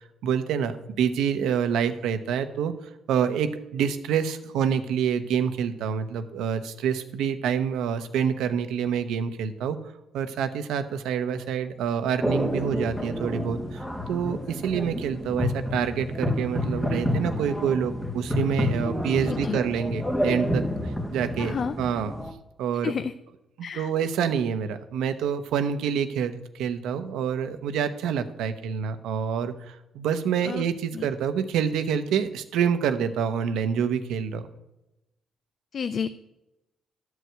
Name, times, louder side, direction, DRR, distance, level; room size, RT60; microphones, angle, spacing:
voice 1, 0.2-2.7 3.1-9.8 10.1-20.7 21.1-22.1 22.6-22.9 23.7-34.5, right 7 dB, 85° right, 9 dB, 0.8 m, -27 dB
sound 1, 12.2-22.3, left 1 dB, 10° left, 1.1 m, -29 dB
voice 2, 21.4-21.8 22.8-23.1 23.6-23.9 30.4-30.6 30.9-31.1 35.7-36.1, left 6 dB, 50° left, 11 dB, 0.4 m, -30 dB
12.5 x 4.8 x 8.0 m, 0.94 s
cardioid pair, 90°, 0 cm